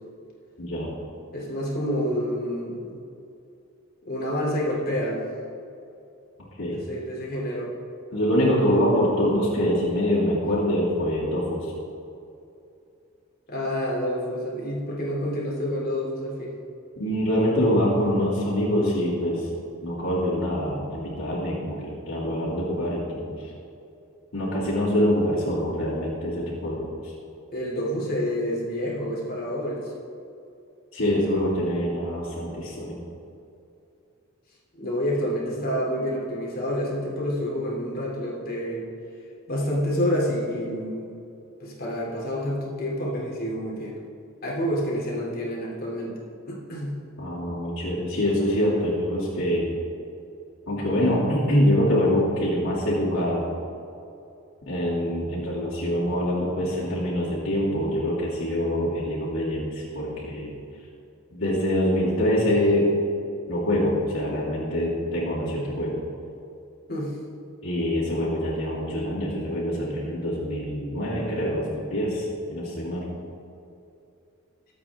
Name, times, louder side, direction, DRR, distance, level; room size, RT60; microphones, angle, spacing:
voice 1, 0.6-0.9 6.6-6.8 8.1-11.7 17.0-19.5 19.8-23.4 24.3-27.1 30.9-33.0 47.2-49.7 50.7-53.4 54.7-60.5 61.3-63.0 63.5-66.0 67.6-73.0, equal, 75° left, -11 dB, 3.1 m, -25 dB
voice 2, 1.3-3.0 4.1-5.2 6.7-7.7 13.5-16.5 27.5-29.9 34.7-38.9 39.5-41.1 41.6-43.9 44.4-46.2 46.5-46.9 66.9-67.2, equal, 45° left, -4 dB, 3.1 m, -28 dB
22.0 x 8.5 x 3.7 m, 2.6 s
head